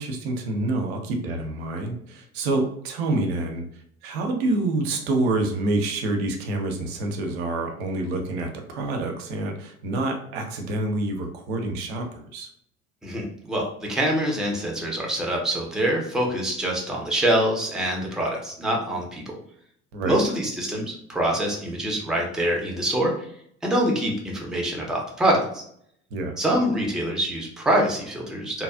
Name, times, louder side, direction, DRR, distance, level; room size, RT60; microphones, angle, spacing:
voice 1, 0.0-3.7 4.0-12.5 19.9-20.2 26.1-26.4, right 2 dB, 60° right, 3 dB, 0.6 m, -27 dB
voice 2, 13.0-19.4 20.1-23.3 23.6-25.6 26.4-28.6, right 1 dB, ahead, -1 dB, 0.6 m, -25 dB
2.9 x 2.3 x 2.3 m, 0.68 s
figure-of-eight pair, 55°, 34 cm